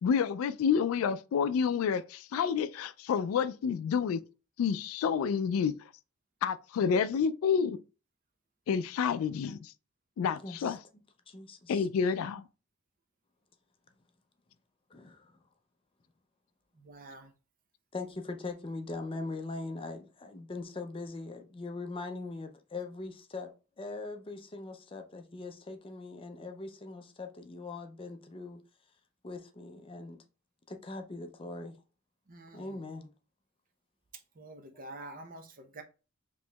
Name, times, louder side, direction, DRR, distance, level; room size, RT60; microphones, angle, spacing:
voice 1, 0.0-4.2 4.6-5.8 6.4-7.8 8.7-9.7 10.2-10.8 11.7-12.5, left 6 dB, 85° left, 0.3 m, -29 dB
voice 2, 10.4-10.8 11.3-11.9 14.9-15.3 17.9-23.5 23.8-28.6 29.2-30.2 30.7-31.8 32.5-33.1, left 3 dB, 25° left, 0.5 m, -41 dB
voice 3, 16.7-17.3 32.3-32.8 34.4-35.8, right 2 dB, 45° right, 0.6 m, -47 dB
4.4 x 3.0 x 2.2 m
head